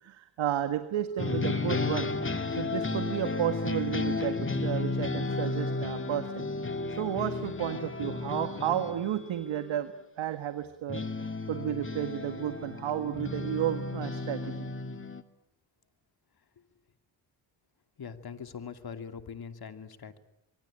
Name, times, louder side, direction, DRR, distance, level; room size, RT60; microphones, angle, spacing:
voice 1, 0.0-2.1 2.5-6.4 6.9-9.9 10.2-11.0 11.5-14.7, right 11 dB, 70° right, 9 dB, 1.8 m, -32 dB
sound 1, 1.2-9.7 10.9-15.2, left 3 dB, 25° left, 2.3 m, -33 dB
voice 2, 18.0-20.2, left 6 dB, 50° left, 8 dB, 2.8 m, -42 dB
24.5 x 24.0 x 8.8 m, 0.82 s
cardioid pair, 70°, 48 cm